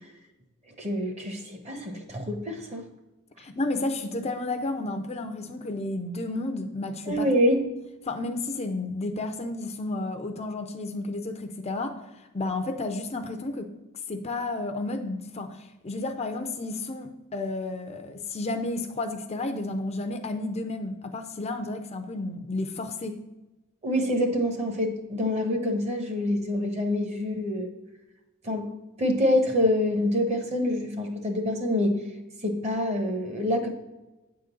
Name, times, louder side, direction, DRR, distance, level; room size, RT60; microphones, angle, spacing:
voice 1, 0.8-2.9 7.1-7.6 23.8-27.7 28.4-28.7 29.0-32.0 32.4-33.7, left 1 dB, 35° right, 4 dB, 1.1 m, -26 dB
voice 2, 3.4-7.3 8.0-12.0 12.3-13.7 14.1-23.2, left 2 dB, 30° left, 6 dB, 0.5 m, -32 dB
8.8 x 3.8 x 6.9 m, 1.0 s
head